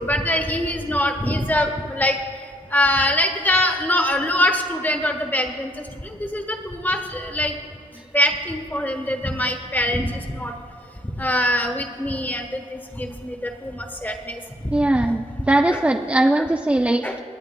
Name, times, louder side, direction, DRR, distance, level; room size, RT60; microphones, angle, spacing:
voice 1, 0.0-7.6 8.1-10.5 11.2-15.2 15.7-15.8 17.0-17.2, left 1 dB, 15° left, 3 dB, 1.3 m, -23 dB
voice 2, 14.7-17.2, right 1 dB, 10° right, 4 dB, 0.4 m, -20 dB
27.0 x 9.7 x 2.2 m, 2.4 s
wide cardioid pair, 90°, 13 cm